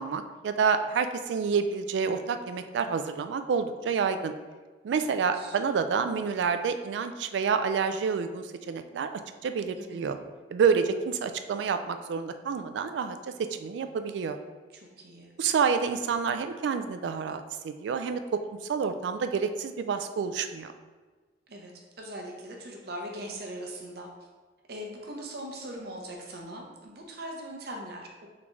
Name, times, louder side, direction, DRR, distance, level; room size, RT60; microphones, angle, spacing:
voice 1, 0.0-4.3 4.8-10.2 10.5-14.4 15.4-18.4 18.7-20.7, right 6 dB, 80° right, 9 dB, 0.3 m, -28 dB
voice 2, 5.0-5.6 9.7-10.2 14.7-15.3 21.5-21.7 22.0-24.1 24.7-28.3, right 1 dB, 65° right, 0 dB, 0.7 m, -40 dB
3.8 x 3.4 x 3.0 m, 1.4 s
head